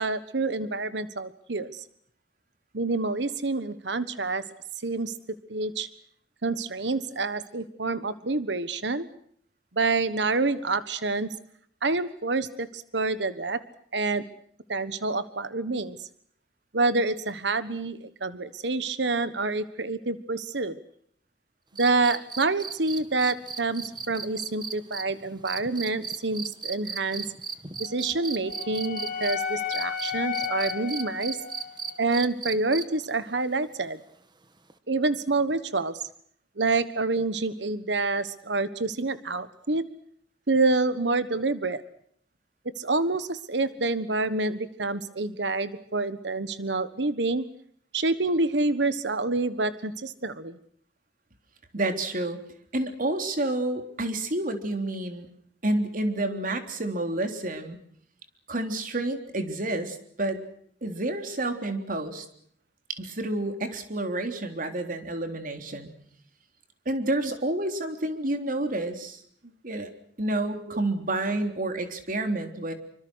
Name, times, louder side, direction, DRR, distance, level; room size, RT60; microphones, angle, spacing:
voice 1, 0.0-1.8 2.7-4.4 4.8-5.1 5.5-5.9 6.4-9.1 9.7-11.3 11.8-13.6 13.9-14.2 14.7-16.1 16.7-20.8 21.7-27.2 27.8-31.4 32.0-34.0 34.9-36.1 36.6-39.9 40.5-41.8 42.8-47.4 47.9-50.6 70.7-70.8, right 3 dB, 80° right, 13 dB, 1.3 m, -27 dB
sound 1, 21.8-29.4 29.7-33.1 34.7-34.8, right 6 dB, 25° right, 1.8 m, -35 dB
Wind instrument woodwind instrument, 27.8-32.0, left 8 dB, 50° left, 3.0 m, -34 dB
voice 2, 51.7-52.4 52.7-55.3 55.6-57.8 58.5-60.4 60.8-62.3 62.9-65.9 66.9-69.2 69.6-69.9 70.2-72.7, right 2 dB, 50° right, 6 dB, 3.6 m, -29 dB
26.5 x 25.0 x 6.4 m, 0.65 s
head